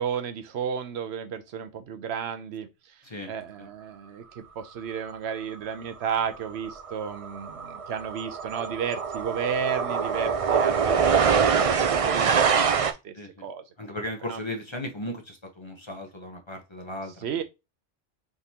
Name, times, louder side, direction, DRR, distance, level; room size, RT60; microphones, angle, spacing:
voice 1, 0.0-13.6 14.3-14.4 17.2-17.4, right 7 dB, 80° right, 0.9 m, -33 dB
sound 1, 6.1-6.3 6.6-12.9, right 6 dB, 50° right, 0.4 m, -24 dB
voice 2, 13.1-13.5 13.8-17.4, left 1 dB, 30° left, 0.8 m, -36 dB
4.6 x 3.7 x 2.7 m
omnidirectional pair, 1.1 m